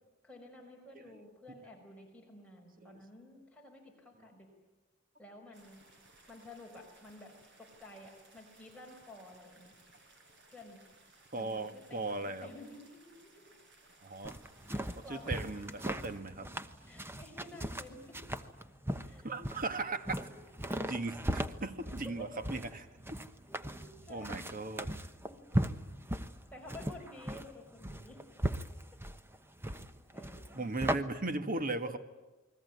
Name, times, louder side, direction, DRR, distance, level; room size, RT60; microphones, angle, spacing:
voice 1, 0.2-4.5 5.2-5.8 6.3-7.3 7.6-9.7 10.5-10.8 11.4-13.5 14.7-15.5 15.9-16.5 16.9-18.2 19.0-19.3 19.7-19.9 20.2-20.4 20.6-20.7 22.0-22.3 23.5-24.6 25.2-25.7 26.5-28.2 30.1-30.7 31.5-32.0, left 1 dB, 5° left, 0 dB, 5.3 m, -52 dB
sound 1, 5.5-16.2, right 2 dB, 60° right, 5.1 m, -62 dB
voice 2, 11.3-12.5 14.0-14.4 15.1-16.5 19.2-20.3 20.9-22.9 24.1-24.9 30.5-32.0, right 2 dB, 45° right, 9 dB, 1.5 m, -37 dB
sound 2, 14.2-31.0, right 1 dB, 10° right, 1.1 m, -38 dB
29.5 x 21.0 x 9.6 m, 1.1 s
head